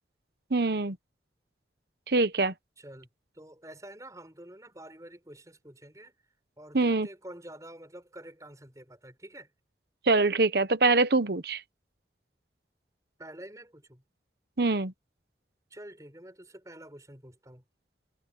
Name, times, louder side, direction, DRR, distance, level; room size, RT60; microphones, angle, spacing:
voice 1, 0.5-1.0 2.1-2.5 6.7-7.1 10.1-11.6 14.6-14.9, right 3 dB, 60° right, 1.0 m, -24 dB
voice 2, 2.8-3.1 3.3-6.1 6.6-9.5 13.2-14.0 15.7-17.6, right 1 dB, 20° right, 7.1 m, -48 dB
head